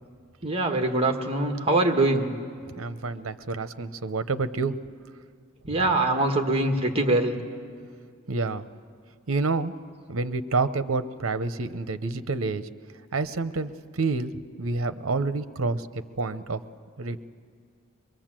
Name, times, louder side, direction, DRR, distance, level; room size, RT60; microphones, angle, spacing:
voice 1, 0.4-2.3 5.7-7.3, right 2 dB, 25° right, 4 dB, 1.4 m, -23 dB
voice 2, 2.8-4.8 5.6-5.8 8.3-8.7 9.3-9.7 10.1-12.7 13.1-16.6 17.0-17.3, right 3 dB, 75° right, 12 dB, 0.8 m, -28 dB
24.0 x 22.5 x 7.5 m, 2.1 s
head